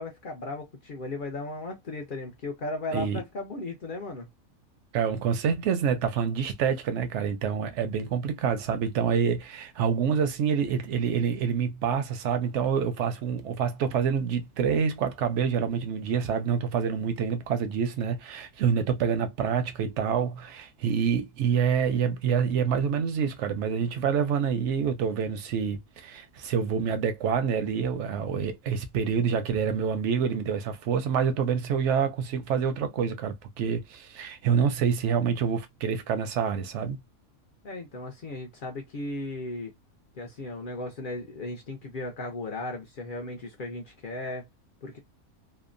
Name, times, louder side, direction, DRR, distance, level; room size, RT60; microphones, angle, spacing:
voice 1, 0.0-4.3 37.6-39.7 40.1-44.5 44.8-45.0, left 2 dB, 65° left, 0.5 m, -36 dB
voice 2, 4.9-37.0, right 7 dB, 65° right, 0.7 m, -27 dB
2.8 x 2.1 x 2.5 m
omnidirectional pair, 1.5 m